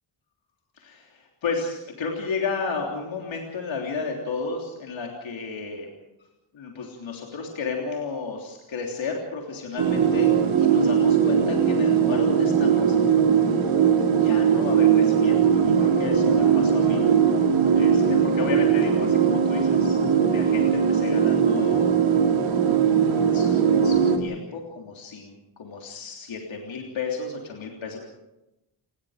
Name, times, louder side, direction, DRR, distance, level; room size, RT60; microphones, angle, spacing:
voice 1, 0.7-5.9 6.5-13.0 14.1-17.1 17.7-20.0 20.3-21.9 23.2-28.0, left 4 dB, 75° left, 0 dB, 3.5 m, -33 dB
sound 1, 9.8-24.2, right 7 dB, 80° right, 3.1 m, -20 dB
29.5 x 20.0 x 5.1 m, 0.94 s
wide cardioid pair, 165°, 46 cm